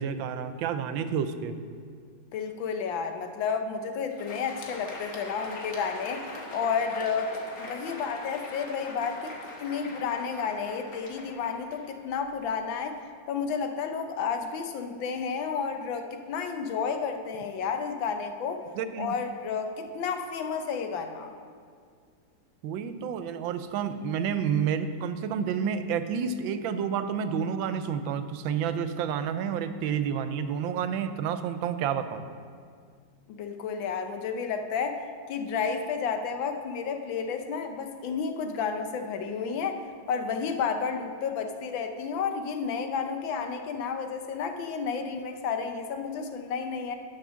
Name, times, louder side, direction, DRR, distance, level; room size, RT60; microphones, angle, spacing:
voice 1, 0.0-1.5 18.8-19.1 22.6-32.2, right 7 dB, 90° right, 10 dB, 1.4 m, -30 dB
voice 2, 2.3-6.2 6.5-13.0 13.3-18.6 19.0-21.3 33.3-47.0, left 6 dB, 85° left, 6 dB, 1.5 m, -31 dB
Crowd, 4.0-12.5, left 2 dB, 50° left, 1.6 m, -42 dB
10.5 x 5.9 x 6.2 m, 2.1 s
omnidirectional pair, 2.1 m